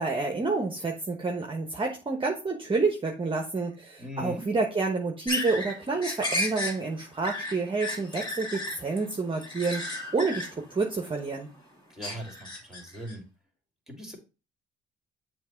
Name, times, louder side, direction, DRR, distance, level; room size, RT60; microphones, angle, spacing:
voice 1, 0.0-9.8 10.1-11.5, right 3 dB, 25° right, 2 dB, 1.0 m, -29 dB
voice 2, 4.0-4.4 11.9-13.2 13.9-14.2, equal, 5° right, 3 dB, 2.4 m, -39 dB
sound 1, 5.3-11.6 12.0-13.1, left 1 dB, 20° left, 2.6 m, -34 dB
7.2 x 2.9 x 5.6 m, 0.31 s
cardioid pair, 90°, 20 cm